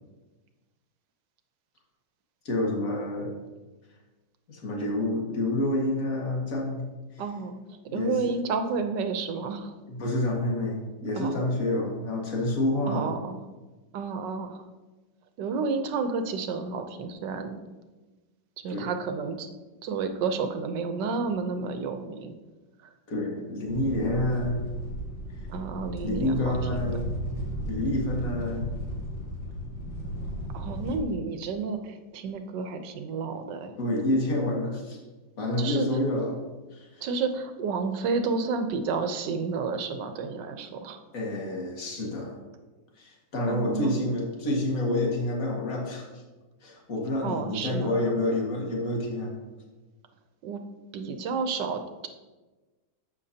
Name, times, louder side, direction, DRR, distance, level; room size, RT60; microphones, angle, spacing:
voice 1, 2.5-3.3 4.5-6.8 7.9-8.2 9.9-13.1 18.7-18.9 23.1-24.6 26.0-27.1 27.6-28.7 33.8-35.0 35.4-36.4 36.7-37.1 41.1-42.3 43.0-46.2 46.6-49.3, left 1 dB, 50° left, -1 dB, 2.2 m, -28 dB
voice 2, 7.2-9.7 11.2-11.4 12.9-13.4 13.9-14.6 15.4-17.6 18.6-19.5 19.8-22.3 25.5-26.9 30.5-33.7 35.6-35.9 37.0-41.0 43.5-44.0 47.2-47.9 50.4-50.6 50.9-52.1, right 4 dB, 75° right, 7 dB, 1.5 m, -31 dB
sound 1, 23.7-31.0, equal, 85° left, 2.3 m, -35 dB
12.0 x 8.0 x 2.8 m, 1.2 s
omnidirectional pair, 1.9 m